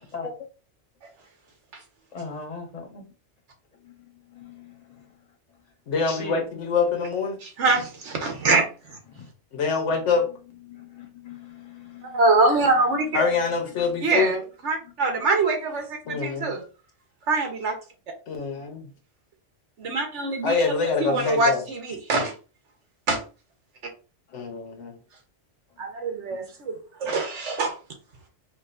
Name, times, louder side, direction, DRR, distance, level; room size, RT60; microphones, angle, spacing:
voice 1, 0.1-0.5 2.1-3.0 3.7-5.6 6.1-6.5 9.1-9.3 9.9-12.4 12.7-14.2 14.8-15.3 16.0-16.2 18.6-18.7 19.8-19.9 21.1-21.2 24.3-24.5 25.7-25.9 26.3-26.4 27.0-27.1, left 4 dB, 35° left, 3 dB, 0.9 m, -42 dB
voice 2, 5.9-7.4 9.5-10.3 13.1-14.3 16.1-16.5 18.3-18.8 20.4-21.6 24.3-24.9, left 5 dB, 90° left, 5 dB, 1.2 m, -25 dB
voice 3, 7.4-9.0 12.0-13.2 14.0-16.6 17.3-17.8 19.8-22.3 23.1-23.2 25.8-27.7, right 3 dB, 80° right, 4 dB, 1.3 m, -24 dB
5.0 x 2.5 x 2.5 m, 0.34 s
omnidirectional pair, 1.2 m